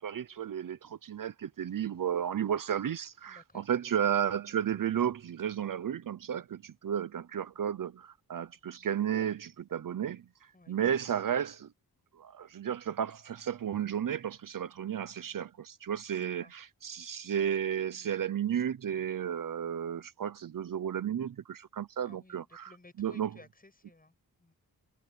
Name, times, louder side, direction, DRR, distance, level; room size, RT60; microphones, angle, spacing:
voice 1, 0.0-10.2 10.7-11.7 12.2-22.7 23.0-23.3, right 9 dB, 60° right, 0.7 m, -33 dB
voice 2, 3.3-3.7 10.5-10.8 16.2-16.5 22.0-24.5, left 2 dB, 25° left, 7.4 m, -57 dB
wide cardioid pair, 105°, 37 cm